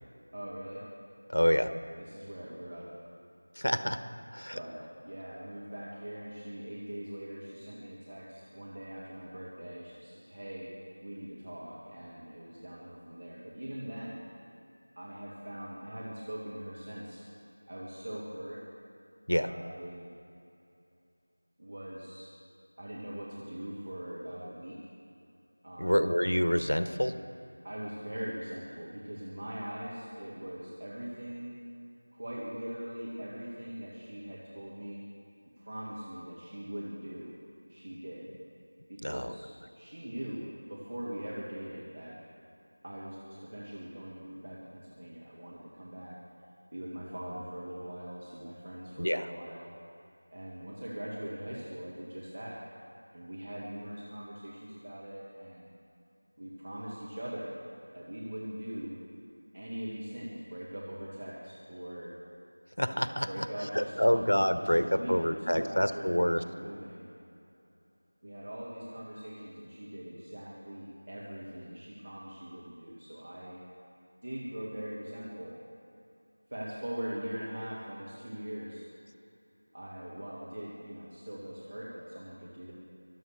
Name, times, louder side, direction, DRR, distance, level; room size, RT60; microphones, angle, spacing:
voice 1, 0.3-0.8 2.0-2.9 4.5-10.7 11.0-14.2 15.0-17.2 17.7-18.6 19.5-20.1 21.6-22.3 22.8-24.8 25.6-26.1 27.6-31.5 32.1-35.0 35.6-37.3 37.7-38.3 38.9-42.2 42.8-46.2 46.7-49.7 50.3-52.6 53.1-55.7 56.4-57.6 57.9-59.0 59.5-62.1 63.3-67.1 68.2-73.6 74.2-75.6 76.5-78.8 79.7-82.7, right 1 dB, 35° right, -6 dB, 1.9 m, -41 dB
voice 2, 1.3-1.7 3.6-4.0 4.3-4.6 19.3-19.5 25.8-27.1 39.0-39.3 49.0-49.3 62.8-63.3 63.7-66.4, equal, 70° left, 10 dB, 1.0 m, -27 dB
23.5 x 7.9 x 6.5 m, 2.8 s
figure-of-eight pair, 175°, 0 cm